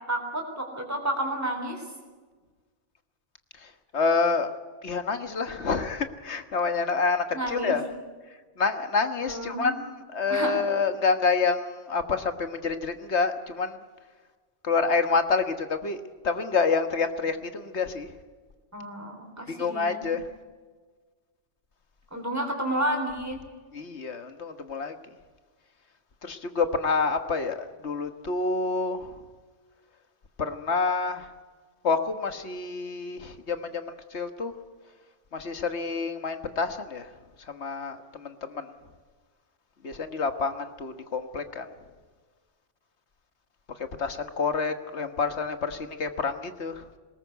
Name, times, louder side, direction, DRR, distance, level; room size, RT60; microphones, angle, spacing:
voice 1, 0.1-1.8 7.3-7.7 9.2-9.8 10.3-10.6 18.7-20.1 22.1-23.4, right 1 dB, 15° right, 2 dB, 3.9 m, -30 dB
voice 2, 3.9-4.5 4.8-7.8 8.6-9.7 10.1-13.8 14.6-18.1 19.5-20.2 23.7-24.9 26.2-29.0 30.4-31.2 31.8-33.8 34.1-34.5 35.3-37.0 37.5-38.6 39.8-41.6 44.0-46.8, left 4 dB, 70° left, 8 dB, 1.7 m, -27 dB
20.5 x 19.0 x 8.2 m, 1.4 s
omnidirectional pair, 1.2 m